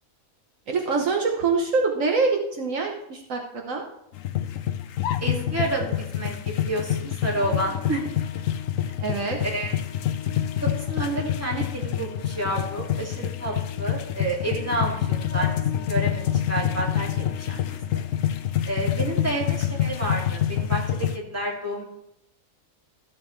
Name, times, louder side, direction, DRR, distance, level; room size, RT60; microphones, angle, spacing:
voice 1, 0.7-3.8 9.0-9.4, right 4 dB, 70° right, 2 dB, 1.4 m, -25 dB
sound 1, 4.1-21.2, left 10 dB, 70° left, 0.9 m, -27 dB
voice 2, 5.2-8.0 9.4-9.7 10.6-18.0 18.6-21.9, right 2 dB, 10° right, -4 dB, 2.2 m, -30 dB
14.0 x 7.5 x 3.2 m, 0.77 s
omnidirectional pair, 1.5 m